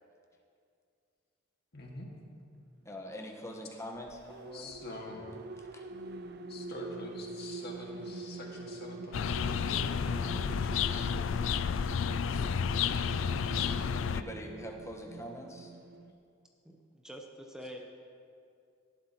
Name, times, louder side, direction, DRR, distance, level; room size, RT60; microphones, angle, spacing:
voice 1, 1.7-2.1 4.5-5.4 6.5-10.8 13.1-13.8, left 1 dB, 55° left, -1 dB, 1.9 m, -46 dB
voice 2, 2.8-4.7 5.7-5.8 10.8-11.3 14.1-15.7, equal, 15° left, 0 dB, 1.1 m, -44 dB
sound 1, 4.0-16.1, right 3 dB, 55° right, 0.5 m, -45 dB
sound 2, 9.1-14.2, left 7 dB, 70° left, 0.4 m, -31 dB
voice 3, 16.6-17.8, equal, 5° right, 1 dB, 0.7 m, -46 dB
18.0 x 11.5 x 3.0 m, 2.4 s
head